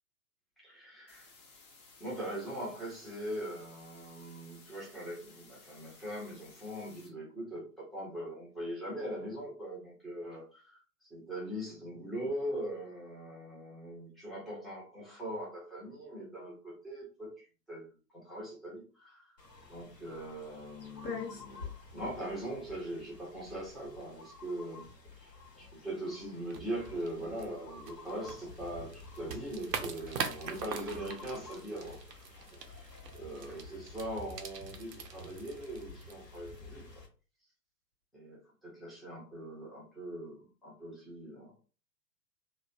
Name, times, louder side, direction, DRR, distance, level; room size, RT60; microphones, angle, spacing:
voice 1, 0.6-1.3 2.0-19.3 19.7-24.9 25.2-36.9 38.1-41.5, right 1 dB, ahead, -7 dB, 0.6 m, -41 dB
sound 1, 1.1-7.1, left 3 dB, 25° left, 0.8 m, -58 dB
sound 2, 19.4-37.1, left 4 dB, 85° left, 1.0 m, -49 dB
sound 3, 26.5-36.7, right 6 dB, 80° right, 0.6 m, -44 dB
3.0 x 2.1 x 2.5 m, 0.37 s
figure-of-eight pair, 115°, 48 cm